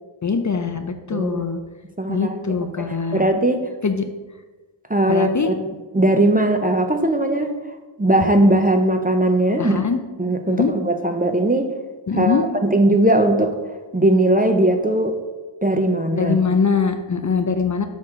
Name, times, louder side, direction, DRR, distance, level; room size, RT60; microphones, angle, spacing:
voice 1, 0.2-1.6 2.1-3.2 3.8-4.1 5.1-5.5 9.6-10.0 10.4-10.7 12.1-12.4 16.2-17.8, left 5 dB, 40° left, 7 dB, 0.5 m, -22 dB
voice 2, 1.1-1.4 2.0-3.6 4.9-7.5 8.0-9.8 10.2-11.7 12.1-13.5 13.9-15.2 15.6-16.4, right 1 dB, 20° right, 5 dB, 0.5 m, -19 dB
6.1 x 4.2 x 4.8 m, 1.2 s
wide cardioid pair, 75°, 49 cm